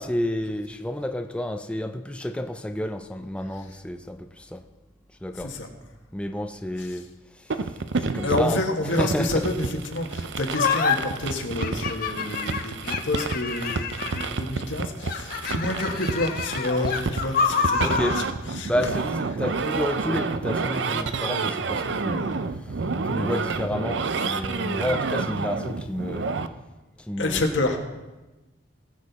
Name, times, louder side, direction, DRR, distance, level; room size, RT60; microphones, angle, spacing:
voice 1, 0.0-4.6 5.2-5.6 6.1-7.0 7.4-7.7 8.0-8.6 9.0-9.4 12.4-12.5 17.8-18.3 18.6-19.1 19.4-22.3 22.6-22.8 23.0-26.3 27.1-27.4, left 1 dB, 5° left, 0.5 m, -30 dB
voice 2, 5.4-5.7 8.2-18.1 18.5-18.7 24.7-24.8 27.2-27.8, left 2 dB, 85° left, 1.6 m, -28 dB
sound 1, 7.5-26.5, right 4 dB, 70° right, 0.6 m, -29 dB
sound 2, 10.5-11.0 11.6-14.4 15.0-18.3, left 5 dB, 50° left, 0.9 m, -27 dB
19.5 x 6.5 x 4.2 m
head